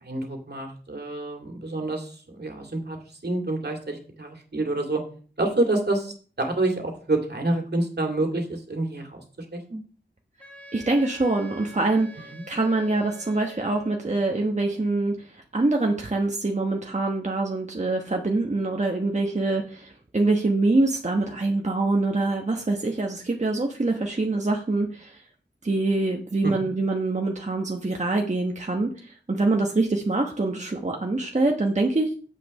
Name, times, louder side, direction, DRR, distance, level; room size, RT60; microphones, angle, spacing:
voice 1, 0.0-3.0 3.2-5.0 5.4-9.2 9.5-9.8 12.2-12.4 26.4-26.5, right 2 dB, 65° right, 2 dB, 2.3 m, -28 dB
Wind instrument woodwind instrument, 10.4-14.1, equal, 5° left, 2.0 m, -46 dB
voice 2, 10.7-25.2 25.6-32.1, right 2 dB, 40° right, 1 dB, 1.2 m, -25 dB
7.8 x 6.6 x 5.3 m, 0.42 s
wide cardioid pair, 55°, 18 cm